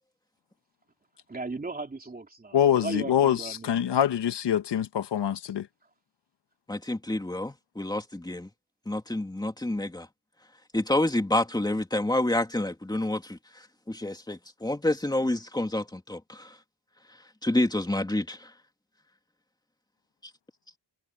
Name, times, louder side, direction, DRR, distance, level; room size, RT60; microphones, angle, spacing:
voice 1, 1.3-3.7, right 3 dB, 20° right, 3.2 m, -36 dB
voice 2, 2.5-5.7, left 10 dB, 70° left, 1.6 m, -25 dB
voice 3, 6.7-8.5 8.9-10.1 10.7-13.4 13.9-16.5 17.4-18.5, left 1 dB, 10° left, 2.7 m, -28 dB
cardioid pair, 120°, 42 cm